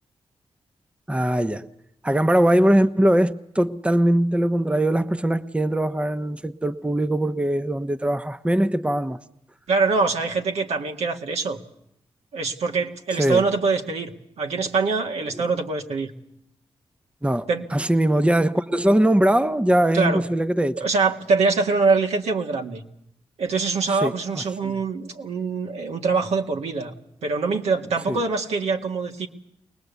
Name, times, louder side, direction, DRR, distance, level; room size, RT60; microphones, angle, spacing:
voice 1, 1.1-1.7 2.0-9.2 13.2-13.5 15.4-15.5 17.2-20.9 23.9-24.8 28.1-28.2, right 1 dB, 10° right, 0.9 m, -21 dB
voice 2, 9.7-11.6 12.3-16.1 17.5-17.6 19.9-20.2 20.8-22.8 23.4-26.9 27.2-29.3, right 4 dB, 75° right, 1.7 m, -24 dB
22.5 x 19.0 x 8.2 m
supercardioid pair, 45°, 11 cm